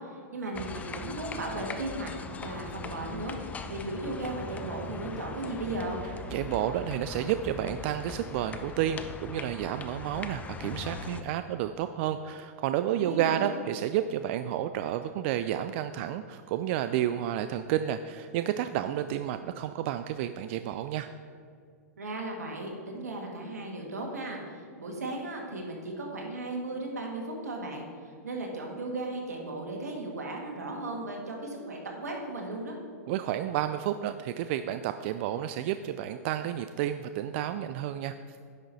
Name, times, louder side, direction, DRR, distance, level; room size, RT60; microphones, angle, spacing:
voice 1, 0.1-2.1 2.4-3.4 3.7-6.0 13.0-13.5 22.0-27.9 28.2-32.8, right 2 dB, 85° right, 0 dB, 2.0 m, -36 dB
sound 1, 0.5-11.2, left 4 dB, 15° left, 0.6 m, -40 dB
voice 2, 6.3-21.1 33.1-38.4, right 11 dB, 50° right, 10 dB, 0.3 m, -31 dB
10.0 x 6.2 x 4.1 m, 2.2 s
hypercardioid pair, 110°, 9 cm